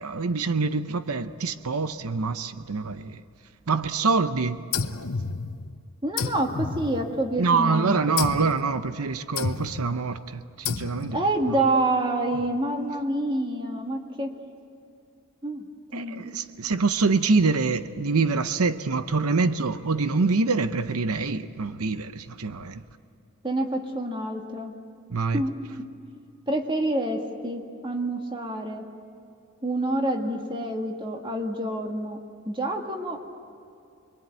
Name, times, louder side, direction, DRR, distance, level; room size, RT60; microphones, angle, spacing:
voice 1, 0.0-3.2 3.7-4.6 7.4-11.2 15.9-22.8 25.1-25.4, right 4 dB, 90° right, 0.8 m, -25 dB
sound 1, 4.7-5.8 6.2-7.5 8.2-8.6 9.4-9.9 10.7-11.3, left 5 dB, 70° left, 0.9 m, -31 dB
voice 2, 6.0-8.1 11.1-14.3 15.4-16.4 23.4-24.7 25.3-25.5 26.5-28.8 29.6-32.2 32.5-33.3, right 1 dB, 20° right, 1.9 m, -27 dB
26.0 x 23.0 x 9.1 m
head